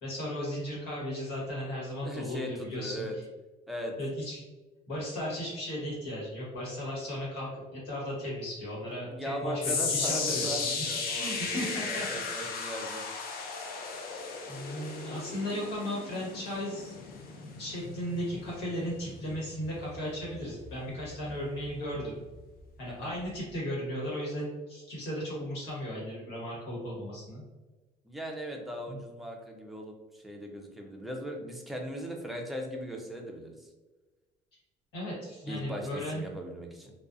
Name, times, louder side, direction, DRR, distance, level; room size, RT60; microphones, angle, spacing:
voice 1, 0.0-3.2 4.0-4.4 4.9-12.1 12.5-12.7 14.5-17.0 17.5-22.2 22.8-27.4 28.9-29.0 34.9-36.3, equal, 80° left, -5 dB, 1.3 m, -36 dB
voice 2, 2.0-3.1 3.7-3.9 9.1-13.0 22.9-23.1 28.1-33.7 35.5-36.9, equal, ahead, 0 dB, 0.5 m, -38 dB
sound 1, 9.6-21.9 22.2-22.6 23.2-23.3, left 4 dB, 65° left, 0.5 m, -36 dB
2.4 x 2.3 x 2.4 m, 1.2 s
cardioid pair, 110°, 17 cm